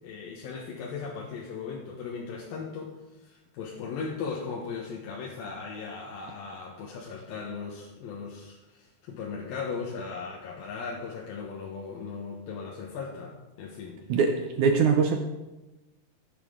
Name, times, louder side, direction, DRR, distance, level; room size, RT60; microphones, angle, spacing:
voice 1, 0.0-14.0, left 5 dB, 80° left, -3 dB, 3.0 m, -37 dB
voice 2, 14.1-15.2, right 5 dB, 70° right, 3 dB, 2.0 m, -22 dB
15.0 x 9.0 x 3.8 m, 1.0 s
omnidirectional pair, 4.1 m